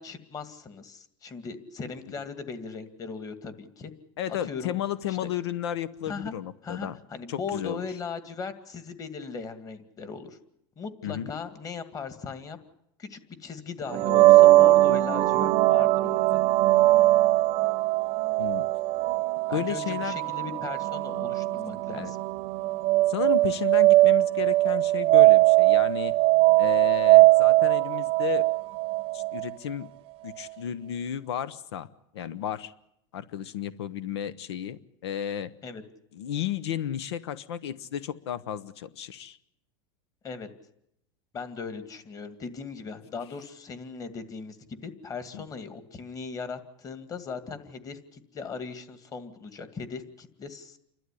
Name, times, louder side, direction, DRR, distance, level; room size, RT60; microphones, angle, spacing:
voice 1, 0.0-3.9 4.4-4.8 5.1-5.2 6.1-6.4 6.6-10.4 10.8-12.6 13.0-16.4 19.5-22.2 35.6-35.8 40.2-40.5 41.3-50.8, left 5 dB, 25° left, 10 dB, 2.2 m, -38 dB
voice 2, 4.2-7.0 7.3-7.9 11.0-11.3 18.4-18.7 19.5-20.2 21.9-22.1 23.1-26.1 26.6-28.5 29.1-29.9 30.2-31.9 32.1-32.7 33.1-35.5 36.1-39.4 45.3-45.4, left 10 dB, 90° left, 15 dB, 1.0 m, -33 dB
sound 1, 13.9-29.5, right 18 dB, 45° right, 0.8 m, -21 dB
29.0 x 12.5 x 10.0 m, 0.78 s
supercardioid pair, 130°, 13 cm